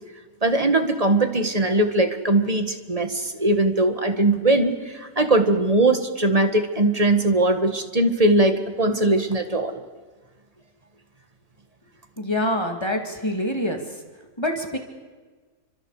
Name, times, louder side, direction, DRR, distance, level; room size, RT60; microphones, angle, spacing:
voice 1, 0.4-9.8, right 2 dB, 25° right, 7 dB, 1.7 m, -20 dB
voice 2, 12.2-13.8 14.4-14.8, left 1 dB, 15° left, 3 dB, 2.4 m, -25 dB
29.5 x 25.5 x 5.0 m, 1.4 s
omnidirectional pair, 1.7 m